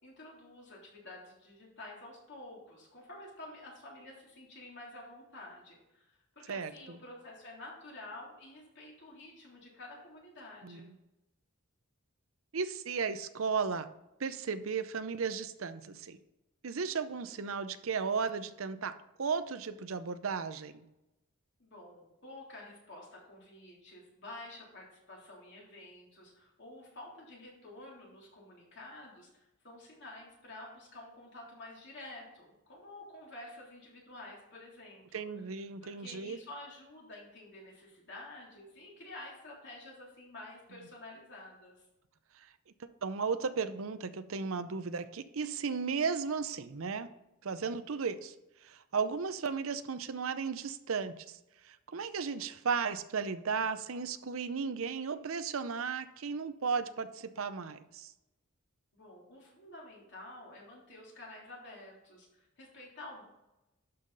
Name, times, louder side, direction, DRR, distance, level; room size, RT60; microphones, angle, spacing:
voice 1, 0.0-10.9 21.6-35.3 35.8-41.9 58.9-63.2, left 2 dB, 55° left, -3 dB, 3.5 m, -50 dB
voice 2, 6.5-7.0 10.6-10.9 12.5-13.9 14.2-16.2 16.6-18.9 19.2-20.8 35.1-36.4 42.4-42.5 42.8-47.1 47.4-48.3 48.6-51.4 51.6-58.1, right 5 dB, 70° right, 12 dB, 0.6 m, -35 dB
12.0 x 5.6 x 4.0 m, 0.94 s
head